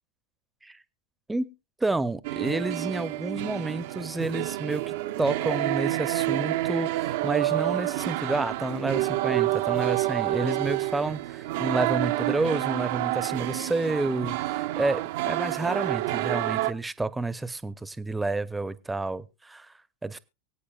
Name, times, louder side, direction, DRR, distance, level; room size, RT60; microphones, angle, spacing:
voice 1, 1.8-19.7 20.0-20.2, right 2 dB, 10° right, 0.7 m, -30 dB
sound 1, 2.2-16.7, right 17 dB, 65° right, 0.6 m, -28 dB
24.0 x 8.4 x 2.3 m
hypercardioid pair, 95°, 0 cm